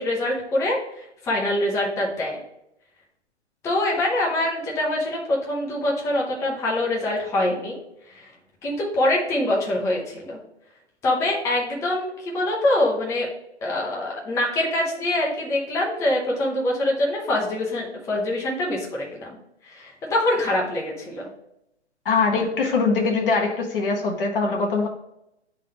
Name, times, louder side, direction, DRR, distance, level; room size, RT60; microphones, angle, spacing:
voice 1, 0.0-2.4 3.6-7.8 8.1-8.3 8.6-10.4 11.0-13.3 13.6-19.4 19.6-21.3, left 1 dB, 10° left, -3 dB, 0.8 m, -24 dB
voice 2, 22.0-24.9, left 4 dB, 50° left, 1 dB, 1.2 m, -22 dB
9.5 x 3.9 x 3.4 m, 0.84 s
figure-of-eight pair, 130°, 34 cm